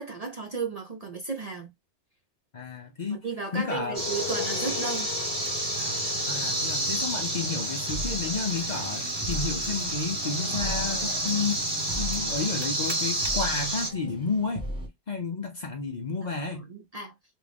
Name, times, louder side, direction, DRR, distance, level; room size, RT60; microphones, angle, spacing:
voice 1, 0.0-1.7 3.1-5.1 16.5-17.1, right 4 dB, 40° right, 0.6 m, -34 dB
voice 2, 2.5-3.2 3.5-4.0 6.3-11.6 12.0-14.7 15.1-16.7, left 4 dB, 45° left, 0.6 m, -31 dB
sound 1, 3.8-9.0, left 10 dB, 80° left, 0.9 m, -39 dB
sound 2, 3.9-13.9, right 1 dB, 20° right, 1.3 m, -30 dB
sound 3, 7.6-14.9, right 1 dB, 5° right, 1.0 m, -39 dB
3.4 x 2.5 x 3.3 m
omnidirectional pair, 1.2 m